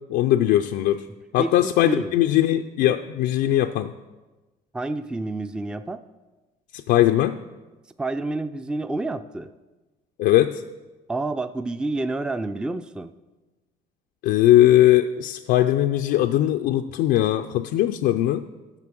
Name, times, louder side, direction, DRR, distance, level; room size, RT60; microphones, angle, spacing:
voice 1, 0.1-1.1 1.3-3.9 6.7-7.4 10.2-10.6 14.2-18.4, left 13 dB, 85° left, 5 dB, 0.4 m, -20 dB
voice 2, 1.4-2.2 4.7-6.0 8.0-9.5 11.1-13.1, right 2 dB, 5° right, 11 dB, 0.3 m, -29 dB
9.7 x 6.7 x 6.0 m, 1.2 s
cardioid pair, 110°, 17 cm